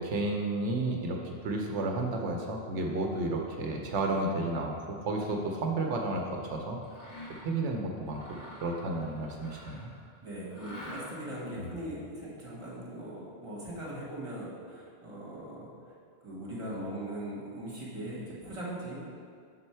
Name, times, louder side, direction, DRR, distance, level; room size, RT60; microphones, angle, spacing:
voice 1, 0.0-6.8 7.4-8.2 8.6-9.9 11.6-11.7, right 2 dB, 90° right, 2 dB, 0.9 m, -32 dB
Mechanisms, 6.8-7.6 8.1-10.0 10.5-11.4, left 1 dB, 75° left, 2.0 m, -46 dB
voice 2, 10.2-15.7 16.2-19.0, right 1 dB, 30° right, -6 dB, 1.5 m, -40 dB
5.3 x 4.1 x 4.4 m, 2.2 s
omnidirectional pair, 1.2 m